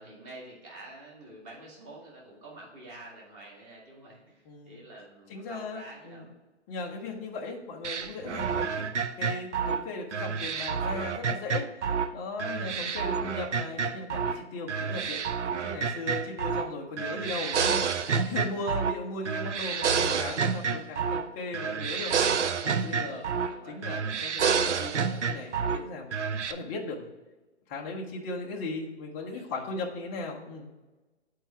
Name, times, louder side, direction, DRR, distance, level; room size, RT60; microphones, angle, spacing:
voice 1, 0.0-6.3 18.5-18.7 23.1-23.9 28.3-28.5 29.2-29.7, right 2 dB, 25° right, -3 dB, 2.3 m, -49 dB
voice 2, 4.5-4.8 5.3-6.3 6.7-11.7 12.1-15.2 15.6-22.1 22.6-23.2 23.7-24.4 24.8-27.1 27.7-30.7, left 3 dB, 10° left, -1 dB, 0.5 m, -37 dB
sound 1, 7.8-12.1 12.4-14.4 14.7-16.7 17.0-19.0 19.3-21.3 21.5-23.6 23.8-25.8 26.1-26.5, right 6 dB, 80° right, 0.7 m, -29 dB
8.0 x 4.6 x 4.6 m, 1.2 s
hypercardioid pair, 140°, 35 cm